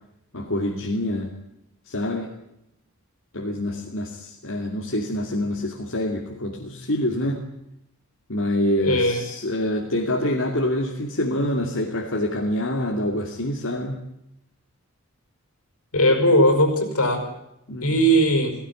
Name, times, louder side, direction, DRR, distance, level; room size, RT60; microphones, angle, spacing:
voice 1, 0.3-1.3 1.9-2.3 3.3-7.4 8.3-14.0 17.7-18.0, left 1 dB, 65° left, -1 dB, 2.7 m, -26 dB
voice 2, 8.8-9.2 15.9-17.3 17.8-18.5, equal, 80° left, 6 dB, 5.6 m, -19 dB
17.5 x 16.5 x 9.9 m, 0.82 s
head